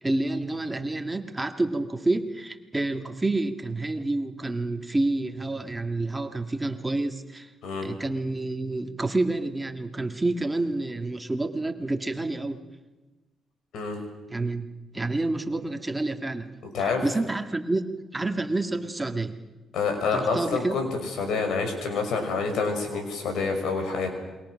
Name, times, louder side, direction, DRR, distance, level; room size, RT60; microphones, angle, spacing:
voice 1, 0.0-7.5 7.8-12.6 14.3-14.7 14.9-16.5 16.8-19.4 20.1-20.8, right 2 dB, 15° right, 6 dB, 1.9 m, -28 dB
voice 2, 19.7-20.9 21.2-24.1, left 4 dB, 75° left, 5 dB, 6.0 m, -27 dB
28.0 x 23.0 x 6.5 m, 1.2 s
cardioid pair, 90°, 0 cm